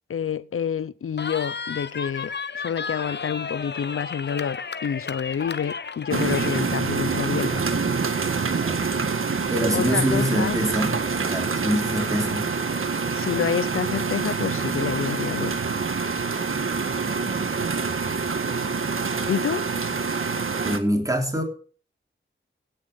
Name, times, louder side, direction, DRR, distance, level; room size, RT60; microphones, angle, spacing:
voice 1, 0.1-7.8 9.7-10.6 13.1-15.5 19.3-19.6, left 7 dB, 85° left, 0.6 m, -28 dB
Cheering, 1.2-6.7, left 5 dB, 55° left, 0.8 m, -33 dB
sound 1, 6.1-20.8, right 4 dB, 75° right, 1.7 m, -26 dB
voice 2, 9.5-10.9 11.3-12.6 17.0-17.5 20.6-21.4, equal, 15° right, 3.2 m, -25 dB
17.0 x 6.8 x 6.8 m
wide cardioid pair, 105°, 21 cm